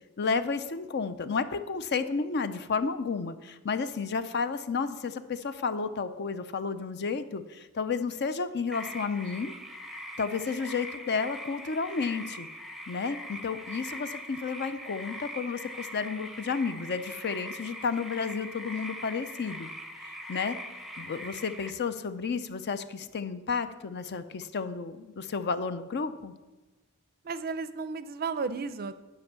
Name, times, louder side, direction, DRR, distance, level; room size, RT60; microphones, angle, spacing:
voice 1, 0.2-9.5 10.2-12.5 12.9-19.7 20.0-20.6 21.0-26.3, left 5 dB, 50° left, 11 dB, 0.6 m, -32 dB
sound 1, 8.7-21.7, equal, ahead, 0.7 m, -42 dB
voice 2, 27.2-29.0, right 4 dB, 45° right, 13 dB, 0.5 m, -33 dB
10.5 x 5.3 x 6.9 m, 1.1 s
head